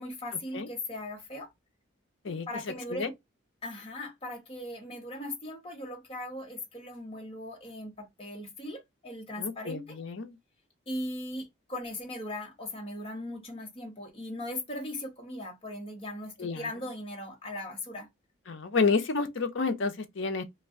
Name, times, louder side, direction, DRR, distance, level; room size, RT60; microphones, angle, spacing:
voice 1, 0.0-1.5 2.5-3.1 3.6-10.0 10.9-18.1, left 1 dB, 30° left, 0.8 m, -39 dB
voice 2, 9.4-10.4 16.4-16.7 18.5-20.4, left 4 dB, 65° left, 0.6 m, -30 dB
2.5 x 2.2 x 3.4 m
head